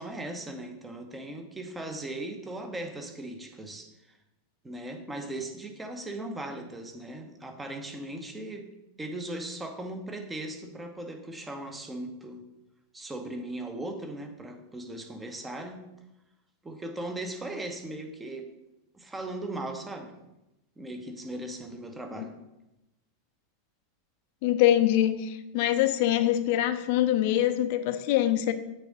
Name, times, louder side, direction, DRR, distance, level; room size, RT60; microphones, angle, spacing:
voice 1, 0.0-4.2 4.6-8.7 9.0-12.4 12.9-15.8 16.6-18.5 18.9-20.2 20.8-22.4, right 1 dB, 10° right, 5 dB, 0.9 m, -38 dB
voice 2, 24.4-28.5, left 12 dB, 50° left, 10 dB, 0.6 m, -24 dB
6.6 x 4.0 x 6.4 m, 0.94 s
figure-of-eight pair, 90°, 0 cm